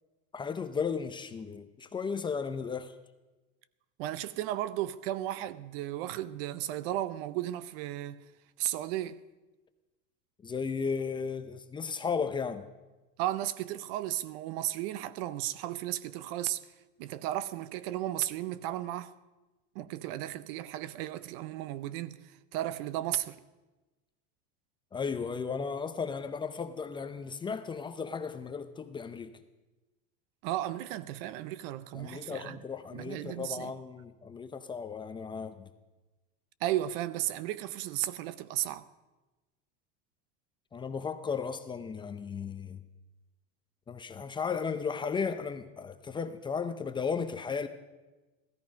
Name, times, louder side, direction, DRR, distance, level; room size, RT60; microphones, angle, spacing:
voice 1, 0.3-2.9 10.4-12.7 24.9-29.4 31.9-35.7 40.7-42.8 43.9-47.7, left 5 dB, 15° left, 0.5 m, -35 dB
voice 2, 4.0-8.2 8.6-9.2 13.2-16.6 17.0-19.1 19.7-23.4 30.4-32.6 32.9-33.7 36.6-38.9, right 13 dB, 60° right, 0.7 m, -34 dB
16.0 x 14.0 x 5.2 m
supercardioid pair, 150°, 33 cm